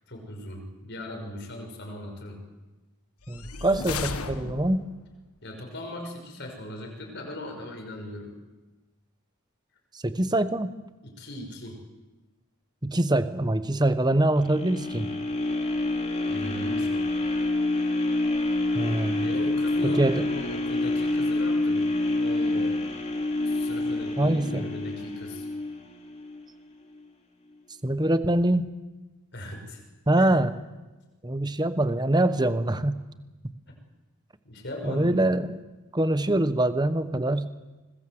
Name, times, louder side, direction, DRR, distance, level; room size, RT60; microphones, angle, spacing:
voice 1, 0.1-2.4 5.4-8.4 11.0-11.8 16.3-17.0 19.2-21.9 22.1-22.8 23.4-25.5 29.3-29.8 30.2-30.3 34.4-35.2, left 1 dB, 50° left, 3 dB, 5.7 m, -39 dB
sound 1, 3.2-5.0, left 4 dB, 90° left, 1.4 m, -34 dB
voice 2, 3.3-4.9 10.0-10.7 12.8-15.1 18.7-19.3 19.8-20.2 24.2-24.7 27.8-28.7 30.1-30.5 31.2-33.0 34.8-35.6 35.9-37.5, right 1 dB, 20° right, 11 dB, 1.0 m, -24 dB
sound 2, 14.4-26.5 26.9-27.0, left 2 dB, 30° left, 2.8 m, -27 dB
25.5 x 20.0 x 7.8 m, 1.2 s
head